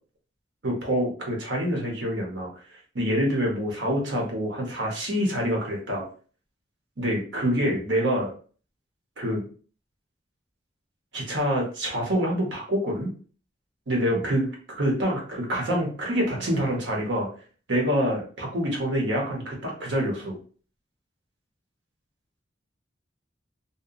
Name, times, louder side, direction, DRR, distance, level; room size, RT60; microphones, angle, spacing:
voice 1, 0.6-2.5 2.9-6.1 7.0-8.3 9.2-9.4 11.1-13.1 13.9-14.5 14.8-17.3 17.7-20.4, equal, 70° right, -1 dB, 0.8 m, -26 dB
voice 2, 16.2-16.6, equal, 5° left, -4 dB, 0.6 m, -37 dB
2.7 x 2.1 x 2.4 m, 0.40 s
head